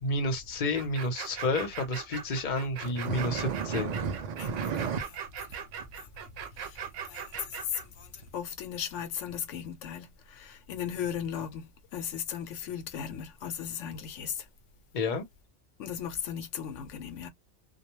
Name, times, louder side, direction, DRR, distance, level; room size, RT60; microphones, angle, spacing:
voice 1, 0.0-4.0 14.9-15.2, left 2 dB, 45° left, 0.8 m, -30 dB
sound 1, 0.8-7.9, right 8 dB, 85° right, 1.0 m, -40 dB
sound 2, 2.8-5.0 5.4-5.5 5.8-5.9 6.6-6.7 7.3-7.4 8.2-8.3, right 6 dB, 65° right, 0.4 m, -33 dB
voice 2, 4.4-5.6 5.9-6.1 6.6-14.5 15.8-17.3, left 8 dB, 80° left, 0.9 m, -37 dB
2.3 x 2.1 x 3.0 m
omnidirectional pair, 1.2 m